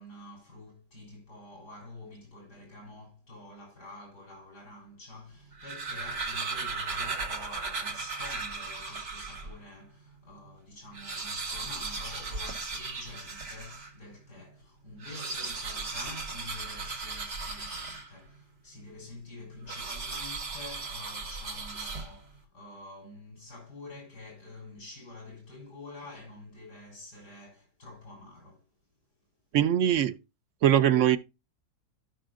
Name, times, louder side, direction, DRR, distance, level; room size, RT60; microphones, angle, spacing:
voice 1, 0.0-28.6, left 2 dB, 75° left, 4.3 m, -48 dB
sound 1, 5.4-9.6 10.1-10.2 10.4-10.5 10.8-14.0 14.9-18.4 19.7-22.4, right 4 dB, 85° right, 2.8 m, -36 dB
voice 2, 29.5-30.2 30.6-31.2, right 10 dB, 65° right, 0.8 m, -22 dB
15.5 x 6.1 x 2.4 m
omnidirectional pair, 1.8 m